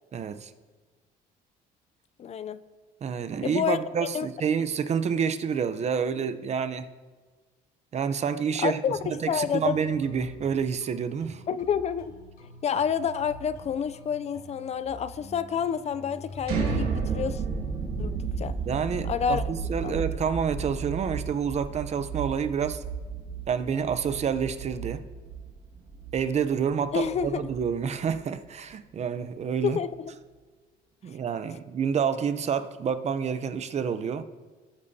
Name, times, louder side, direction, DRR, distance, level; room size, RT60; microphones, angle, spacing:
voice 1, 0.1-0.5 3.0-6.9 7.9-8.8 9.2-11.4 18.7-22.8 23.5-25.0 26.1-29.8 31.0-34.2, right 7 dB, 40° right, 11 dB, 0.7 m, -28 dB
voice 2, 2.2-2.6 3.4-3.8 4.1-4.3 8.6-9.8 11.5-12.1 12.6-17.4 18.0-18.5 19.0-19.4 19.8-20.0 26.9-27.4 29.6-30.1, left 7 dB, 40° left, 14 dB, 0.4 m, -29 dB
sound 1, 8.9-16.8, left 1 dB, 65° left, 3.9 m, -47 dB
sound 2, 16.4-28.3, right 5 dB, 70° right, 2.1 m, -33 dB
18.0 x 8.6 x 2.8 m, 1.4 s
cardioid pair, 110°, 17 cm